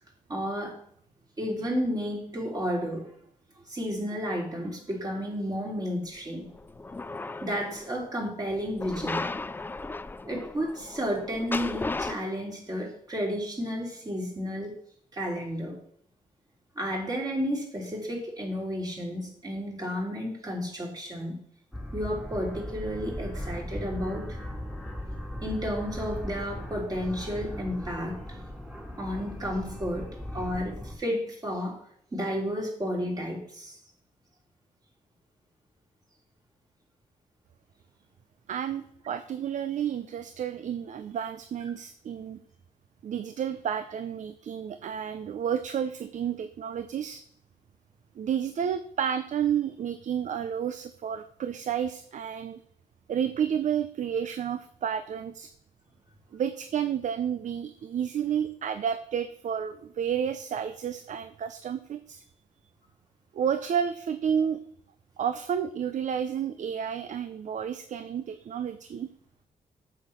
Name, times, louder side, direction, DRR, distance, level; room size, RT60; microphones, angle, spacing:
voice 1, 0.3-0.8 1.4-3.0 3.7-6.5 7.4-9.3 10.2-14.7 15.1-15.8 16.7-21.4 21.9-24.3 25.4-28.2 29.0-30.1 30.3-31.8 32.1-33.8, equal, 25° right, -1 dB, 3.3 m, -32 dB
sound 1, 6.5-7.9 8.8-12.1, left 3 dB, 15° left, 0.4 m, -35 dB
sound 2, 21.7-31.0, left 1 dB, ahead, 2.1 m, -38 dB
voice 2, 38.5-42.4 43.0-47.2 48.2-52.6 53.1-55.5 56.3-62.2 63.3-64.6 65.2-69.1, right 8 dB, 60° right, 11 dB, 0.6 m, -31 dB
8.3 x 7.2 x 5.8 m, 0.65 s
cardioid pair, 120°, 14 cm